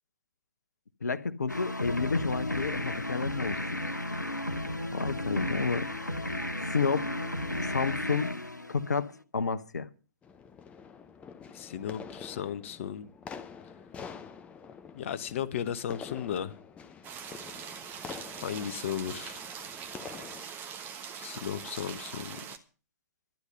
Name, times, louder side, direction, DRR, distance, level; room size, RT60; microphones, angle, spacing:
voice 1, 1.0-3.9 4.9-5.9 6.7-7.1 7.7-8.3 8.7-9.9, left 5 dB, 70° left, 1.0 m, -30 dB
sound 1, 1.5-9.2, left 1 dB, 90° left, 0.8 m, -34 dB
sound 2, 10.2-20.5, left 6 dB, 15° left, 0.7 m, -46 dB
voice 2, 11.5-13.1 14.9-16.5 18.4-19.4 21.2-22.4, left 9 dB, 45° left, 1.0 m, -35 dB
sound 3, 17.0-22.6, right 7 dB, 20° right, 1.2 m, -42 dB
12.0 x 9.9 x 5.7 m
figure-of-eight pair, 115°, 10 cm